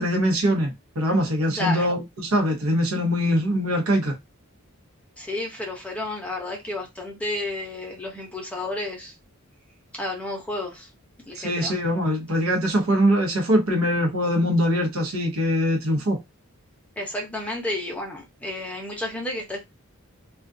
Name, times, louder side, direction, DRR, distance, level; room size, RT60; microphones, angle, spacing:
voice 1, 0.0-4.2 11.4-16.2, equal, 75° right, 0.8 m, -22 dB
voice 2, 1.6-1.9 5.2-9.1 10.0-10.9 11.3-11.8 17.0-19.7, left 2 dB, 5° left, 0.7 m, -31 dB
2.3 x 2.3 x 2.5 m
head